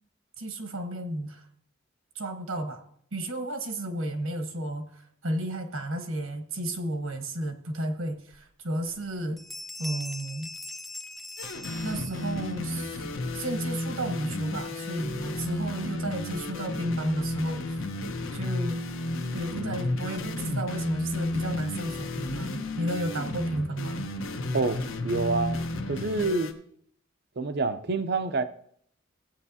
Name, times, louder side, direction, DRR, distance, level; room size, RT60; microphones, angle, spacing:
voice 1, 0.4-1.5 2.1-2.8 3.1-9.4 9.8-10.5 11.8-13.1 13.3-17.8 18.3-18.8 19.3-24.0, right 1 dB, 80° right, 1.3 m, -33 dB
sound 1, 8.3-8.4 8.9-9.1 9.4-12.5, left 2 dB, ahead, 0.4 m, -41 dB
sound 2, 11.4-26.5, left 1 dB, 70° left, 1.0 m, -33 dB
voice 2, 24.5-25.6 25.9-26.5 27.4-28.4, right 3 dB, 50° right, 0.6 m, -27 dB
15.5 x 8.6 x 2.8 m
head